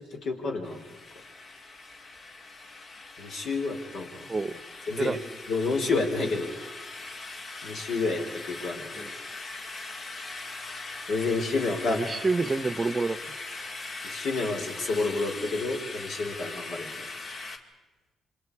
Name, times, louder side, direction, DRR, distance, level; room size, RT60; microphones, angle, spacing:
voice 1, 0.2-0.8 3.2-4.3 4.9-5.2 5.5-6.5 7.6-9.1 11.1-12.0 14.0-16.9, left 3 dB, 70° left, 2 dB, 4.2 m, -29 dB
sound 1, 0.6-17.6, left 3 dB, 50° left, 2.2 m, -40 dB
voice 2, 11.9-13.5, right 3 dB, 25° right, 14 dB, 1.0 m, -28 dB
27.5 x 25.5 x 4.9 m, 1.2 s
cardioid pair, 90°, 0 cm